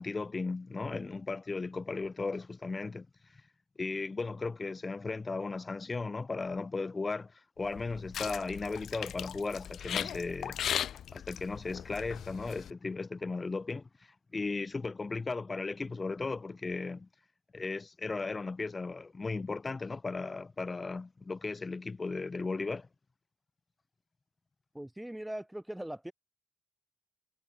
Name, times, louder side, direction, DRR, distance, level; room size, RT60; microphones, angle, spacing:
voice 1, 0.0-3.1 3.3-3.4 3.8-10.6 11.1-13.9 14.3-17.1 17.5-22.9, left 3 dB, 30° left, 6.4 m, -36 dB
sound 1, 7.6-12.7, left 9 dB, 70° left, 3.1 m, -38 dB
voice 2, 24.7-26.1, right 1 dB, 5° right, 6.9 m, -40 dB
cardioid pair, 90°, 0 cm